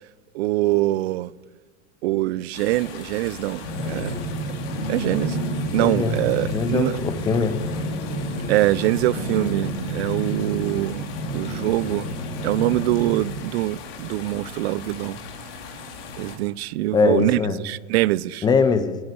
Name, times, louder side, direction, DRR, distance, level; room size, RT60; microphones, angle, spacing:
voice 1, 0.3-1.3 2.0-4.2 4.9-7.0 8.5-12.2 12.4-15.2 16.2-18.4, right 17 dB, 60° right, 0.4 m, -24 dB
sound 1, 2.5-16.4, left 4 dB, 55° left, 2.4 m, -39 dB
sound 2, 3.6-13.2, equal, 85° left, 3.4 m, -29 dB
voice 2, 5.8-7.6 16.9-17.6 18.4-19.0, left 4 dB, 10° left, 0.6 m, -22 dB
12.0 x 9.5 x 8.1 m
supercardioid pair, 145°, 35 cm